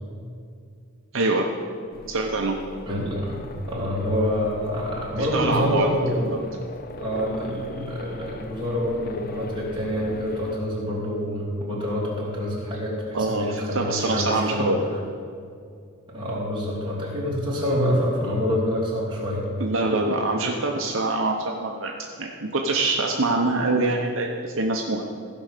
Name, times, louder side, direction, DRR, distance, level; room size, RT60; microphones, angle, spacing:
voice 1, 1.1-1.5 2.1-2.6 5.2-6.4 13.1-14.8 19.6-21.9 22.2-25.0, right 2 dB, 60° right, 1 dB, 0.8 m, -24 dB
sound 1, 1.9-10.6, left 2 dB, 40° left, 0.5 m, -40 dB
voice 2, 2.9-3.4 3.7-6.4 7.0-14.7 16.1-19.4, equal, 20° right, -6 dB, 2.9 m, -26 dB
15.5 x 5.3 x 6.7 m, 2.3 s
head